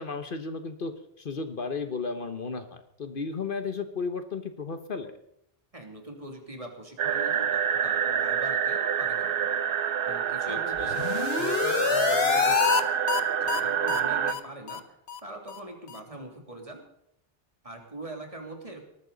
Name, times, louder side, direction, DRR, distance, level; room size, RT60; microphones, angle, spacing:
voice 1, 0.0-5.1 10.5-11.0, left 4 dB, 55° left, 9 dB, 1.3 m, -34 dB
voice 2, 5.7-9.5 10.0-12.9 13.4-14.8 15.2-16.8 17.6-18.9, right 1 dB, 35° right, 2 dB, 2.8 m, -42 dB
sound 1, 7.0-14.3, right 8 dB, 65° right, 0.9 m, -27 dB
sound 2, 10.8-12.8 13.1-13.2 13.5-13.6 13.9-14.0 14.3-14.4 14.7-14.8 15.1-15.2 15.5-15.6 15.9-16.0, left 7 dB, 75° left, 1.1 m, -26 dB
19.0 x 13.5 x 4.0 m, 0.77 s
omnidirectional pair, 1.0 m